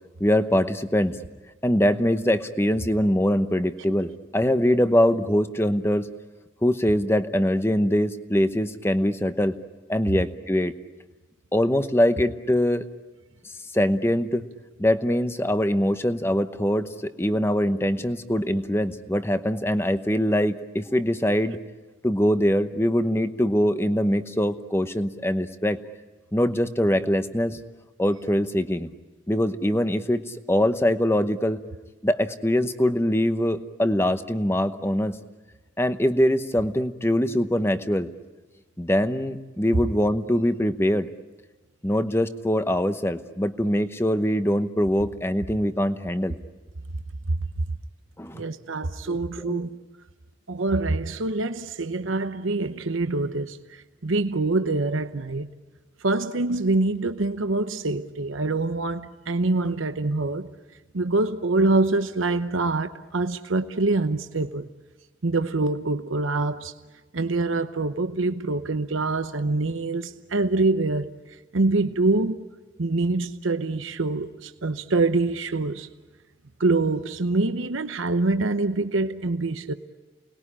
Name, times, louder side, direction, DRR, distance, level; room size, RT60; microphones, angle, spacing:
voice 1, 0.2-1.2 1.6-6.1 6.6-9.6 9.9-10.7 11.5-12.9 13.7-14.4 14.8-21.6 22.0-25.8 26.3-27.6 28.0-28.9 29.3-31.6 32.0-35.2 35.8-38.1 38.8-41.1 41.8-46.4 48.2-48.5 49.1-49.6, equal, 10° left, 0.9 m, -23 dB
voice 2, 48.3-49.8 50.5-55.5 56.0-60.5 60.9-64.7 65.2-66.7 67.1-71.1 71.5-72.4 72.8-75.9 76.6-79.7, right 2 dB, 85° right, 0.9 m, -25 dB
29.5 x 20.5 x 10.0 m
head